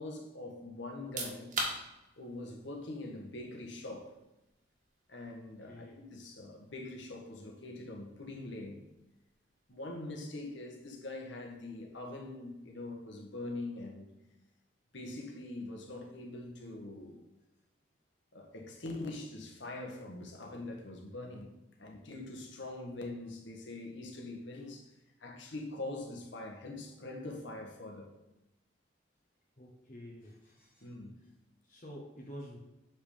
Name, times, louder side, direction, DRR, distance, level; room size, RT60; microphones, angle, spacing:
voice 1, 0.0-1.5 2.2-4.1 5.1-8.8 9.7-14.1 14.9-17.2 18.3-24.9 25.2-28.1 30.8-31.2, left 2 dB, 75° left, 1.5 m, -43 dB
sound 1, 0.9-13.6, right 2 dB, 45° right, 1.7 m, -47 dB
voice 2, 5.7-6.0 29.6-30.9 31.6-32.6, equal, 40° left, 1.2 m, -49 dB
7.3 x 5.4 x 5.1 m
head